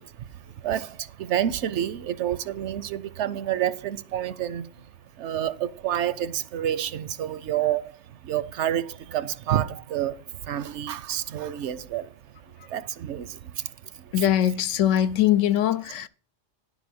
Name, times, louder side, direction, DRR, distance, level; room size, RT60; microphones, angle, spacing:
voice 1, 0.0-4.9 5.2-12.1 12.4-14.3, right 11 dB, 70° right, 0.9 m, -29 dB
voice 2, 14.1-16.1, left 11 dB, 75° left, 0.9 m, -22 dB
10.5 x 4.2 x 7.7 m
omnidirectional pair, 1.3 m